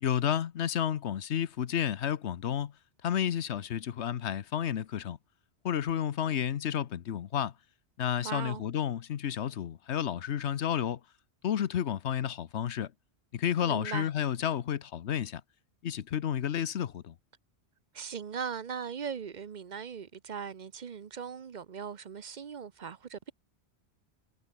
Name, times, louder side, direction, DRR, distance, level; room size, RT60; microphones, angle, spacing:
voice 1, 0.0-2.7 3.0-5.2 5.6-7.5 8.0-11.0 11.4-12.9 13.3-15.4 15.8-17.1, left 9 dB, 80° left, 1.1 m, -31 dB
voice 2, 8.2-8.6 13.6-14.1 17.9-23.3, right 7 dB, 45° right, 0.8 m, -39 dB
omnidirectional pair, 1.1 m